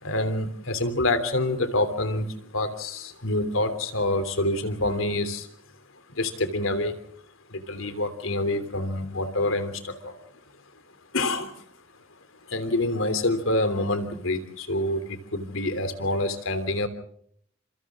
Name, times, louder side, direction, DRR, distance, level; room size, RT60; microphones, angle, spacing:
voice 1, 0.0-5.5 6.1-7.0 7.5-10.2 11.1-11.6 12.5-16.9, left 2 dB, 85° left, 10 dB, 3.2 m, -27 dB
30.0 x 26.5 x 3.7 m, 0.68 s
head